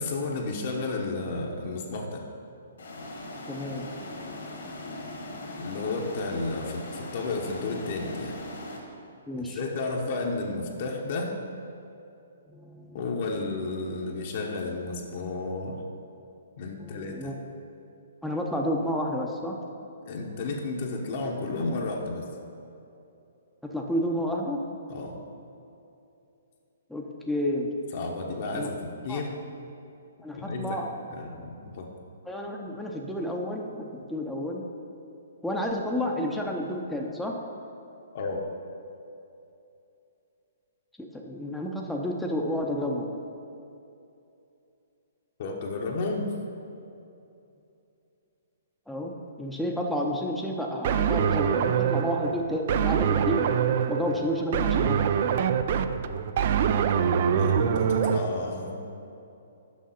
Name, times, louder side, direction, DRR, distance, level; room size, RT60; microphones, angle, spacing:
voice 1, 0.0-2.3 5.6-8.4 9.4-11.4 12.9-15.8 16.6-17.3 20.0-22.2 24.9-25.2 27.9-28.8 29.0-29.4 30.3-30.8 31.1-31.9 38.1-38.5 45.4-46.3 57.2-58.8, left 3 dB, 50° left, 0 dB, 0.9 m, -32 dB
sound 1, 2.8-8.8, left 1 dB, 70° left, 1.6 m, -40 dB
voice 2, 3.3-5.9 9.3-9.6 12.5-14.1 16.8-17.4 18.2-19.6 23.6-24.6 26.9-27.7 28.5-28.7 29.1-29.2 30.2-30.9 32.3-34.6 35.4-37.3 41.0-43.1 48.9-53.4 53.9-55.0, equal, ahead, -1 dB, 0.6 m, -31 dB
sound 2, 50.8-58.2, right 8 dB, 50° right, 0.3 m, -25 dB
6.4 x 5.6 x 5.5 m, 2.7 s
hypercardioid pair, 135°, 0 cm